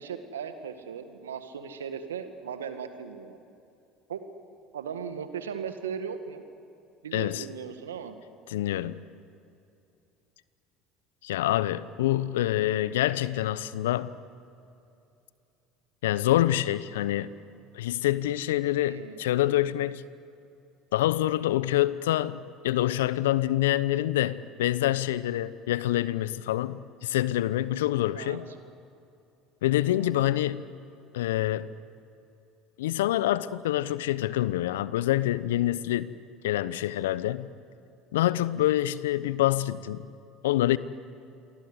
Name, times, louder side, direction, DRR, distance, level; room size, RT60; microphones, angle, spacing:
voice 1, 0.0-3.4 4.1-4.2 4.7-6.4 7.0-8.2 18.8-19.2 28.1-28.4 29.9-30.1, right 7 dB, 85° right, 1.9 m, -37 dB
voice 2, 7.1-7.5 8.5-9.0 11.2-14.1 16.0-17.3 17.7-20.0 20.9-28.4 29.6-30.6 31.1-31.7 32.8-36.1 36.4-37.5 38.1-40.0 40.4-40.8, left 14 dB, 75° left, 0.8 m, -26 dB
28.5 x 24.0 x 8.1 m
hypercardioid pair, 65°, 0 cm